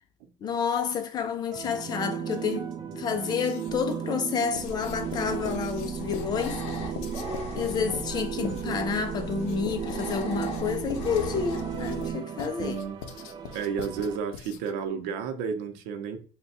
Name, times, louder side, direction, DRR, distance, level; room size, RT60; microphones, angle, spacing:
voice 1, 0.4-6.9 7.6-12.8, left 6 dB, 30° left, 0.4 m, -30 dB
sound 1, 1.5-14.2, right 8 dB, 30° right, 0.4 m, -35 dB
Writing, 3.2-3.9 4.5-14.9, left 7 dB, 85° left, 0.5 m, -43 dB
sound 2, 4.6-12.1, left 2 dB, 45° left, 0.8 m, -39 dB
voice 2, 12.6-13.0 13.5-16.2, right 6 dB, 80° right, 0.7 m, -32 dB
3.4 x 2.3 x 4.0 m
cardioid pair, 160°, 15 cm